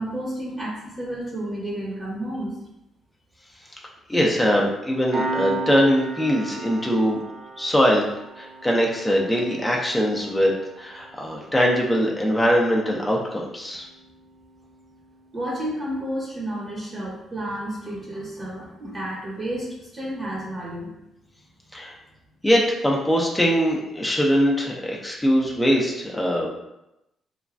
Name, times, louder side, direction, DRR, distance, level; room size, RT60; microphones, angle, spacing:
voice 1, 0.0-2.5 15.3-20.9, right 1 dB, 35° right, -6 dB, 0.9 m, -31 dB
voice 2, 4.1-7.2 7.6-8.0 8.4-13.8 21.7-21.9 22.4-26.5, equal, 5° left, -3 dB, 0.5 m, -22 dB
Piano, 5.1-16.2, right 3 dB, 70° right, 0.9 m, -37 dB
3.1 x 2.2 x 2.5 m, 0.89 s
cardioid pair, 90°, 0 cm